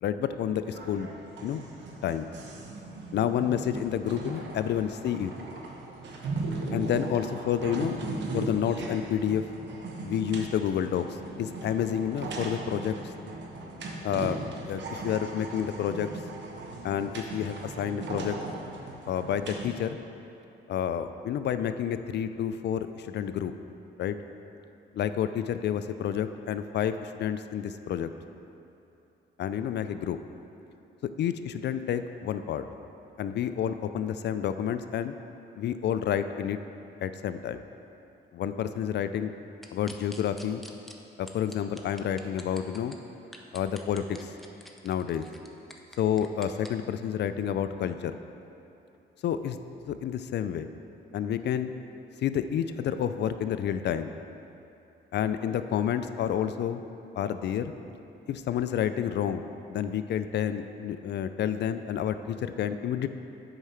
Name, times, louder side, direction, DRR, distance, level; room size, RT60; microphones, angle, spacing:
voice 1, 0.0-1.1 1.4-1.6 2.0-2.3 3.1-5.3 6.7-8.0 8.3-9.5 10.0-13.1 14.0-14.4 14.7-16.1 16.8-18.4 19.1-20.0 20.7-23.5 24.0-24.2 24.9-28.1 29.4-30.2 31.2-32.6 33.2-35.1 35.6-36.6 37.0-37.6 38.3-39.3 39.7-40.6 41.2-43.0 43.5-44.3 44.8-45.3 46.0-48.2 49.2-49.6 49.9-50.7 51.1-51.7 52.2-54.1 55.1-56.8 57.1-57.7 58.3-59.4 59.7-63.1, left 9 dB, 60° left, 10 dB, 0.4 m, -29 dB
sound 1, 0.6-19.7, right 2 dB, 65° right, 1.1 m, -38 dB
sound 2, 39.6-40.9 41.3-43.0 43.3-46.7, equal, ahead, 0.7 m, -46 dB
8.0 x 4.8 x 5.7 m, 2.8 s
cardioid pair, 90°, 20 cm